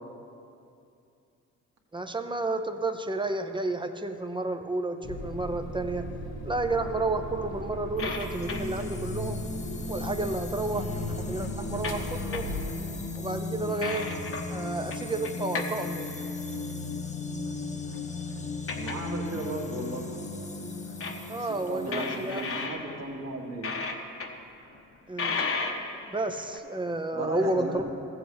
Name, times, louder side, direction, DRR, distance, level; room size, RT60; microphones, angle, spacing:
voice 1, 1.9-6.1 6.4-9.4 9.9-10.9 11.3-12.5 13.2-14.1 14.5-16.1 21.3-22.4 25.1-25.4 26.1-27.8, right 2 dB, 15° right, 7 dB, 0.6 m, -31 dB
sound 1, 5.0-13.1, equal, 65° left, 1.4 m, -38 dB
sound 2, 7.4-9.0 10.5-10.6 10.8-10.9 11.7-12.1 12.3-12.7 13.1-13.2 13.8-14.5 14.9-15.7 16.0-16.5 17.8-18.3 18.7-19.1 19.5-19.6 19.9-20.0 21.0-21.2 21.8-23.3 23.6-24.4 24.7-24.8 25.2-26.6, left 4 dB, 40° left, 1.0 m, -34 dB
sound 3, 8.0-22.7, left 3 dB, 20° left, 0.8 m, -36 dB
voice 2, 18.8-20.0 21.3-23.7 27.1-27.8, right 2 dB, 50° right, 0 dB, 1.7 m, -35 dB
14.5 x 7.8 x 3.4 m, 2.6 s
supercardioid pair, 65°, 34 cm